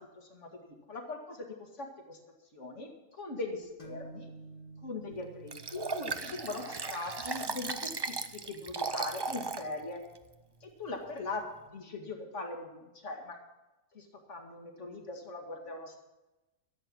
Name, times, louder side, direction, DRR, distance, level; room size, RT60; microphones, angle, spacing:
voice 1, 0.0-2.2 2.5-4.3 4.8-10.0 10.6-13.4 13.9-16.0, left 3 dB, 65° left, 2 dB, 2.3 m, -41 dB
sound 1, 3.8-11.3, right 2 dB, 25° left, 1.8 m, -53 dB
Liquid, 5.5-9.7 10.2-10.3, right 4 dB, 40° right, 0.3 m, -36 dB
13.5 x 7.9 x 7.6 m, 1.0 s
omnidirectional pair, 1.4 m